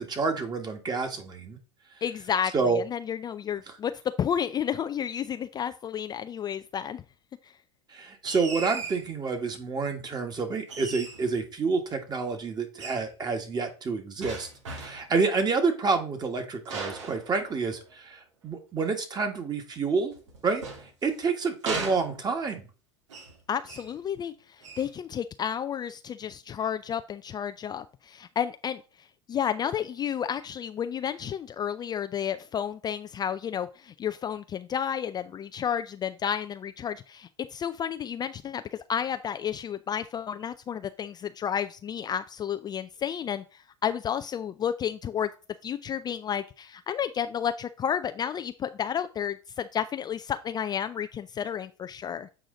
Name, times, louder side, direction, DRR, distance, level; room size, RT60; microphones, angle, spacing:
voice 1, 0.0-1.6 2.5-2.8 7.9-20.1 20.4-20.6 21.0-22.7, right 4 dB, 25° right, 5 dB, 1.8 m, -28 dB
voice 2, 2.0-3.9 4.2-7.0 7.4-7.5 23.5-45.3 45.6-52.3, left 8 dB, 25° left, 10 dB, 0.4 m, -31 dB
sound 1, 8.2-9.1 10.7-11.4 12.8-13.1 14.2-15.1 16.6-17.9 20.1-21.2 21.6-22.5 23.1-23.4 23.6-24.0 24.6-24.9, right 4 dB, 80° right, 1.9 m, -37 dB
7.8 x 4.8 x 3.9 m, 0.34 s
hypercardioid pair, 85°, 15 cm